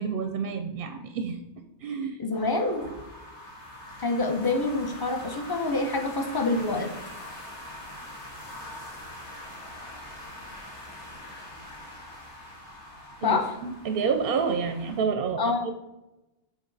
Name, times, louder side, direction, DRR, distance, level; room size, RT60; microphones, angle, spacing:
voice 1, 0.0-1.4 1.8-2.2 2.8-2.9 13.2-15.7, right 5 dB, 60° right, 7 dB, 0.6 m, -29 dB
voice 2, 2.2-2.9 4.0-6.9 13.2-13.5 15.4-15.7, left 3 dB, 25° left, 4 dB, 0.6 m, -26 dB
sound 1, 2.3-15.0, left 1 dB, 75° left, 1.8 m, -43 dB
7.2 x 3.8 x 4.0 m, 0.97 s
omnidirectional pair, 1.2 m